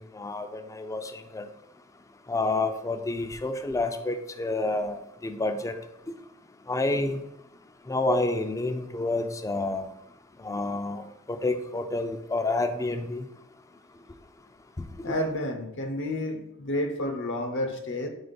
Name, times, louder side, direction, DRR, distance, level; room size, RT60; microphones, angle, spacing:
voice 1, 0.1-1.5 2.3-5.8 6.7-7.2 7.9-9.9 10.4-11.0 11.3-13.2 15.0-15.2, left 2 dB, 15° left, 7 dB, 0.4 m, -29 dB
voice 2, 15.0-18.1, left 1 dB, 60° left, 5 dB, 0.7 m, -30 dB
4.8 x 4.0 x 5.1 m, 0.82 s
head